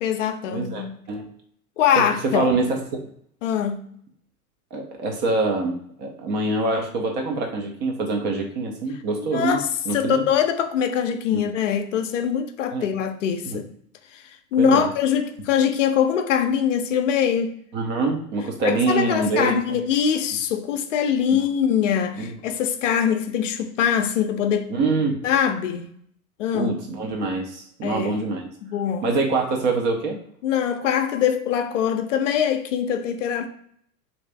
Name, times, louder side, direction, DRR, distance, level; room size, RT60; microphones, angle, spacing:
voice 1, 0.0-1.0 1.8-2.5 3.4-3.8 9.2-13.7 14.1-14.2 14.5-17.5 18.6-24.7 25.2-25.9 26.4-26.7 27.8-28.1 28.6-29.0 30.4-33.5, left 8 dB, 55° left, 0.6 m, -23 dB
voice 2, 0.5-1.3 2.0-3.0 4.7-9.6 9.9-10.2 11.3-11.4 12.7-12.9 13.4-13.6 14.6-14.9 17.7-19.8 21.3-21.4 22.2-22.3 24.7-25.2 26.5-28.5 29.0-30.2, right 3 dB, 25° right, 0.5 m, -25 dB
3.2 x 2.7 x 3.3 m
figure-of-eight pair, 90°, 45 cm